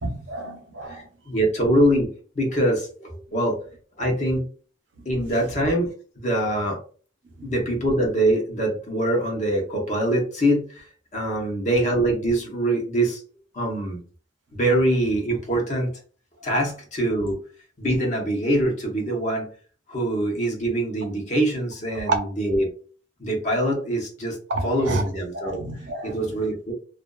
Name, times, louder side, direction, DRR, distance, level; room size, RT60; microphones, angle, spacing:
voice 1, 0.0-1.1 7.4-7.6 22.1-22.2 24.5-25.1 25.3-26.4, right 2 dB, 85° right, 0.7 m, -29 dB
voice 2, 0.9-2.1 2.4-3.6 4.0-4.5 5.0-5.9 6.2-6.8 7.4-10.8 11.1-13.2 13.5-14.0 14.5-15.9 16.4-17.4 17.8-19.5 19.9-22.7 23.2-24.4 24.6-25.6 26.0-26.7, right 1 dB, 40° left, 0.7 m, -23 dB
2.4 x 2.3 x 2.3 m
head